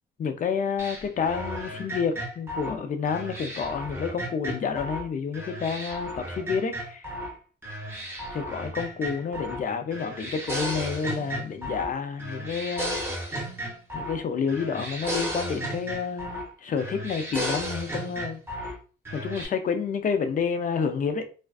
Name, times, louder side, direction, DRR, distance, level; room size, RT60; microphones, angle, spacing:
voice 1, 0.2-7.1 8.3-13.0 13.9-18.8 19.1-21.3, left 6 dB, 40° left, 0.5 m, -29 dB
sound 1, 0.8-5.1 5.3-7.3 7.6-9.6 9.9-11.9 12.2-14.2 14.5-16.5 16.8-18.7 19.0-19.5, equal, 10° right, 0.8 m, -34 dB
2.4 x 2.3 x 2.3 m
cardioid pair, 90°, 20 cm